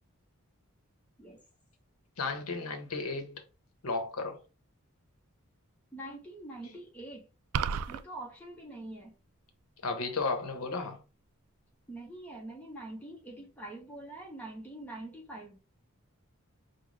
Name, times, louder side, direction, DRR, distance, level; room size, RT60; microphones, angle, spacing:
voice 1, 2.2-3.4 3.8-4.4 9.8-11.0, left 3 dB, 80° left, 0.9 m, -34 dB
voice 2, 5.9-7.2 7.9-9.1 11.9-15.6, right 1 dB, 5° left, 0.9 m, -44 dB
sound 1, 7.5-8.0, right 7 dB, 80° right, 0.3 m, -30 dB
5.1 x 2.2 x 3.3 m
head